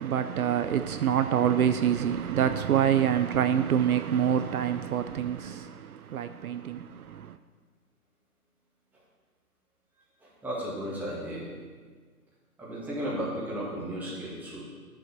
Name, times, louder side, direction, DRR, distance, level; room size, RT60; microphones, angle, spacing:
voice 1, 0.0-7.4, right 9 dB, 65° right, 0.6 m, -26 dB
voice 2, 10.2-11.5 12.6-14.6, equal, 5° right, 1.6 m, -34 dB
12.0 x 7.1 x 4.4 m
hypercardioid pair, 145°, 47 cm